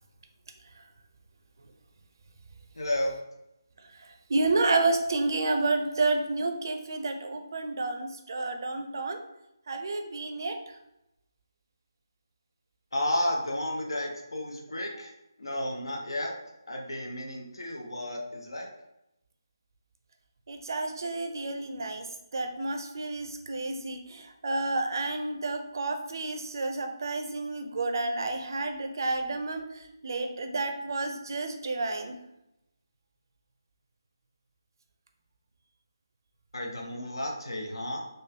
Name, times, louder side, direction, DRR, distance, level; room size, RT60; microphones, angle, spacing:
voice 1, 2.7-3.2 12.9-15.1 15.4-16.3 16.7-18.7 36.5-38.0, left 1 dB, 85° left, 1 dB, 0.8 m, -32 dB
voice 2, 4.3-9.2 9.7-10.6 20.5-22.1 22.3-32.2, right 3 dB, 55° right, 6 dB, 0.5 m, -30 dB
3.8 x 2.6 x 2.7 m, 0.87 s
figure-of-eight pair, 160°, 2 cm